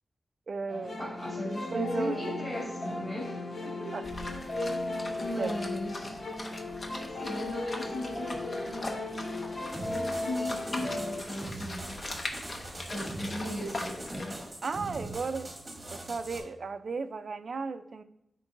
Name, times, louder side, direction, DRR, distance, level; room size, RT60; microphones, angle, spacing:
voice 1, 0.5-1.0 1.4-2.3 3.9-4.0 5.4-5.5 14.6-15.5 15.9-18.0, right 4 dB, 55° right, 10 dB, 0.4 m, -35 dB
sound 1, 0.7-11.2, left 2 dB, 80° left, 2.0 m, -36 dB
voice 2, 1.0-4.0 4.5-4.7 5.2-6.2 7.1-9.3 10.0-12.0 12.9-14.4, left 1 dB, 5° left, -6 dB, 2.4 m, -37 dB
sound 2, 4.0-14.5, left 2 dB, 40° left, 0.8 m, -41 dB
sound 3, 9.7-16.4, right 2 dB, 20° right, 1.2 m, -42 dB
9.8 x 4.5 x 2.6 m, 0.78 s
wide cardioid pair, 165°, 0 cm